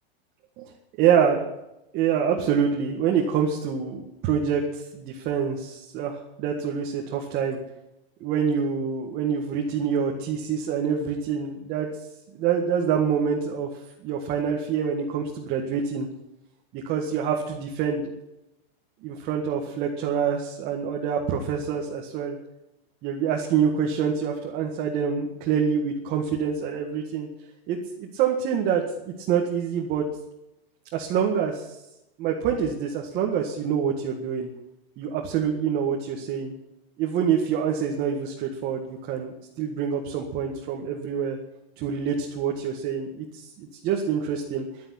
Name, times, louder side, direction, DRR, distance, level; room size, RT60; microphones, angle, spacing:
voice 1, 1.0-1.5 1.9-7.6 8.2-11.9 12.3-13.7 14.0-16.1 16.7-18.1 19.0-22.4 23.0-27.3 27.7-30.0 30.9-31.8 32.2-34.5 35.0-36.5 37.0-41.4 41.8-44.7, right 7 dB, 30° right, 1 dB, 1.9 m, -26 dB
11.5 x 10.0 x 9.9 m, 0.89 s
supercardioid pair, 150°, 31 cm